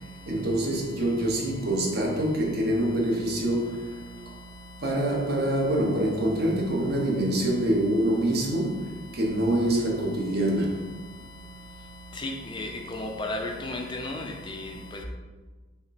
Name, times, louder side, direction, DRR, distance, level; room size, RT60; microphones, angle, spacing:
voice 1, 0.3-3.8 4.8-8.8 9.1-10.7, right 1 dB, 50° right, -2 dB, 0.9 m, -25 dB
voice 2, 12.2-12.7 13.0-14.2, left 2 dB, 25° left, 3 dB, 0.4 m, -32 dB
5.7 x 2.1 x 4.2 m, 1.3 s
head